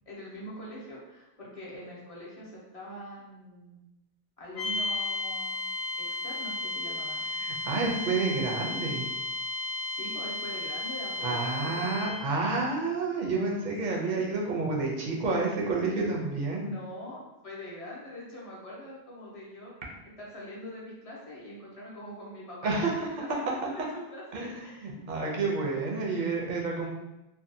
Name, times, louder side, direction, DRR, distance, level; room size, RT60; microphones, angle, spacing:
voice 1, 0.1-3.8 4.4-7.2 9.8-11.9 13.9-14.3 16.6-19.7 20.2-25.5, equal, 40° left, -5 dB, 0.6 m, -43 dB
sound 1, 4.6-12.3, left 2 dB, 85° left, 0.9 m, -34 dB
voice 2, 7.4-9.1 11.2-16.7 22.6-23.1 24.3-26.9, right 3 dB, 55° right, -1 dB, 0.6 m, -29 dB
2.6 x 2.2 x 2.5 m, 0.96 s
omnidirectional pair, 1.0 m